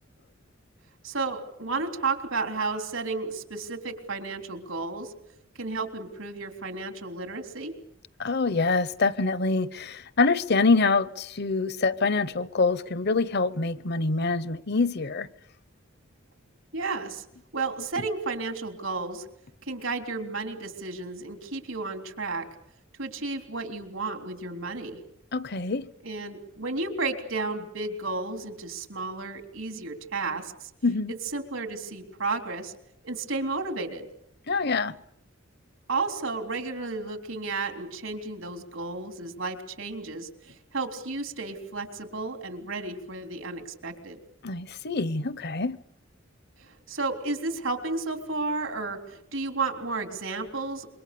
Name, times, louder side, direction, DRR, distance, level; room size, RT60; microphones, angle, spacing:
voice 1, 1.0-5.1 5.6-7.7 16.7-17.3 17.5-19.3 19.6-22.5 23.0-25.0 26.0-30.7 31.1-32.7 33.0-34.1 35.9-44.2 46.6-50.9, right 3 dB, 80° right, 3.6 m, -32 dB
voice 2, 8.2-15.3 25.3-25.9 30.8-31.1 34.5-34.9 44.4-45.8, left 3 dB, 55° left, 0.9 m, -25 dB
27.0 x 23.5 x 6.9 m
head